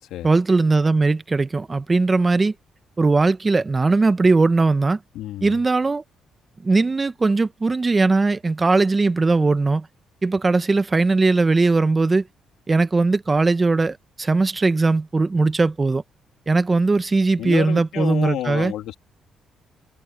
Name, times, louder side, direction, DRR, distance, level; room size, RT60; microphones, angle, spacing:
voice 1, 0.2-2.5 3.0-5.0 5.4-6.0 6.6-9.9 10.2-12.2 12.7-16.0 16.5-18.7, right 3 dB, 25° right, 1.0 m, -19 dB
voice 2, 5.1-5.5 17.4-19.0, left 13 dB, 90° left, 2.9 m, -29 dB
cardioid pair, 90°, 0 cm